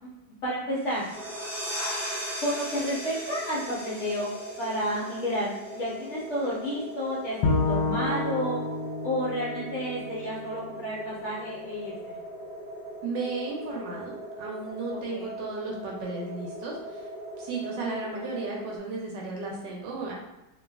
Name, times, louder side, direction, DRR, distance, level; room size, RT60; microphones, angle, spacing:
voice 1, 0.0-1.1 2.4-4.3 4.6-8.6 9.0-12.2 14.9-15.3, equal, 55° left, -7 dB, 0.8 m, -31 dB
sound 1, 0.8-6.2, equal, 25° right, 0.6 m, -38 dB
sound 2, 1.1-18.8, right 1 dB, 15° left, 1.1 m, -40 dB
Bowed string instrument, 7.4-10.7, left 3 dB, 85° left, 1.2 m, -29 dB
voice 2, 13.0-17.0 17.4-20.1, right 3 dB, 80° right, -2 dB, 1.3 m, -34 dB
3.0 x 2.8 x 2.3 m, 1.0 s
omnidirectional pair, 1.9 m